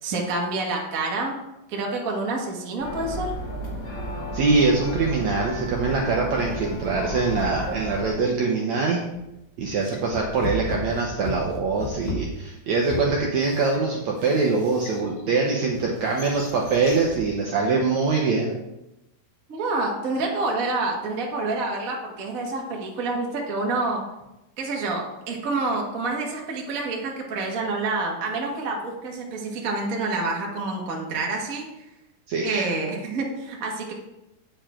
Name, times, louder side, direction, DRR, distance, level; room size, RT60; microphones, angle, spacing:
voice 1, 0.0-1.4 1.7-3.3 19.5-24.0 24.6-31.6 32.4-33.9, right 3 dB, 45° right, -1 dB, 1.1 m, -28 dB
sound 1, 2.8-8.1, equal, 35° left, 1.8 m, -32 dB
voice 2, 4.3-9.0 9.6-18.5 32.3-32.7, right 4 dB, 70° right, -1 dB, 1.8 m, -23 dB
sound 2, 9.2-9.4 9.8-15.3 15.7-17.3, left 2 dB, 65° left, 3.0 m, -36 dB
9.0 x 7.0 x 4.4 m, 0.91 s
omnidirectional pair, 4.3 m